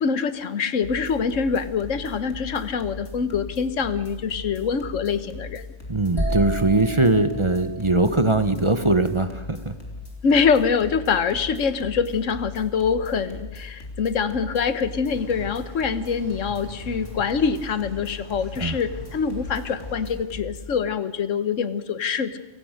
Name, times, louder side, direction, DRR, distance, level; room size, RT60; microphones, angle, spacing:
voice 1, 0.0-5.7 10.2-22.3, left 6 dB, 85° left, 13 dB, 1.4 m, -24 dB
sound 1, 0.8-20.6, left 3 dB, 60° left, 3.9 m, -38 dB
voice 2, 5.9-9.7 18.6-18.8, right 2 dB, 25° right, 11 dB, 1.0 m, -21 dB
sound 2, 6.2-10.0, right 1 dB, 20° left, 3.7 m, -32 dB
sound 3, 15.0-20.1, equal, 75° right, 4.7 m, -44 dB
29.0 x 16.5 x 6.5 m, 1.1 s
omnidirectional pair, 1.3 m